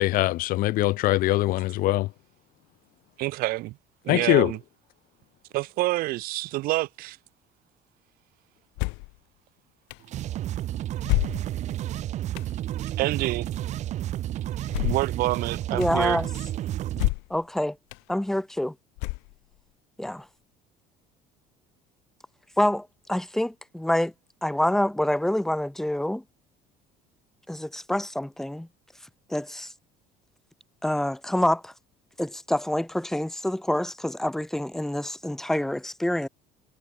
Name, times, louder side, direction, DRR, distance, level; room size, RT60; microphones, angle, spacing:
voice 1, 0.0-2.1 4.1-4.5, left 17 dB, 60° left, 3.8 m, -22 dB
voice 2, 3.2-3.8 4.0-4.6 5.5-7.2 13.0-13.5 14.8-16.2, right 19 dB, 65° right, 3.7 m, -27 dB
sound 1, 8.8-9.2 9.9-10.0 11.1-11.7 12.4-12.5 14.7-15.2 15.8-15.9 16.9-17.4 17.9-18.0 19.0-19.5, left 31 dB, 90° left, 5.3 m, -28 dB
sound 2, 10.0-17.1, right 13 dB, 45° right, 2.0 m, -31 dB
voice 3, 15.7-16.3 17.3-17.7 18.1-18.7 20.0-20.2 22.6-24.1 24.4-26.2 27.5-28.7 29.3-29.7 30.8-31.7 32.2-36.3, left 1 dB, ahead, 1.1 m, -26 dB
cardioid pair, 160°, 17 cm